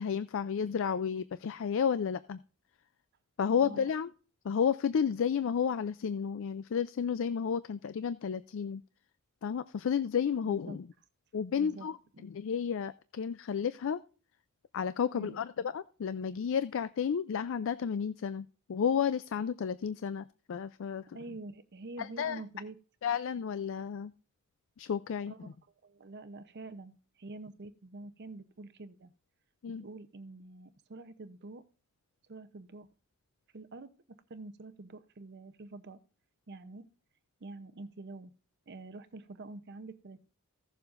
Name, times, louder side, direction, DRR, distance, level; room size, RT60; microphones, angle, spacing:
voice 1, 0.0-2.4 3.4-4.1 4.4-8.8 9.4-10.9 11.3-12.0 12.2-14.0 14.7-21.1 22.0-22.4 23.0-24.1 24.8-25.5 29.6-29.9, left 7 dB, 60° left, 14 dB, 0.4 m, -32 dB
voice 2, 10.4-10.8 11.6-12.3 15.1-15.4 21.1-22.8 25.3-25.4 25.8-29.1 29.8-31.6 32.3-32.9 33.5-33.9 34.3-36.0 36.5-36.9 37.4-38.3 38.7-40.3, right 2 dB, 50° right, 10 dB, 0.7 m, -46 dB
16.0 x 7.1 x 2.5 m, 0.37 s
head